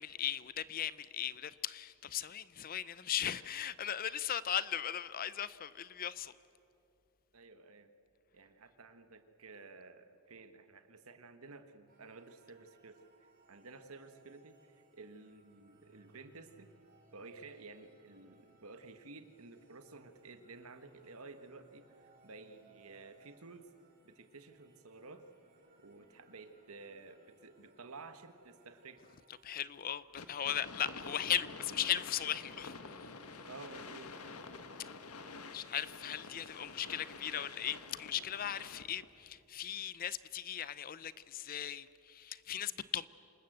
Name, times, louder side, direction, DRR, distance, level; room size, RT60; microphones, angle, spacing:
voice 1, 0.0-6.3 29.4-33.0 35.5-43.1, left 10 dB, 40° left, 0.5 m, -38 dB
voice 2, 7.3-7.9 8.3-16.7 17.1-23.7 24.0-25.3 25.8-29.1 33.4-34.1, right 3 dB, 75° right, 1.4 m, -53 dB
sound 1, 11.9-29.6, right 3 dB, 40° right, 3.8 m, -67 dB
sound 2, 30.2-39.1, left 4 dB, 85° left, 1.5 m, -49 dB
27.0 x 19.5 x 8.0 m
head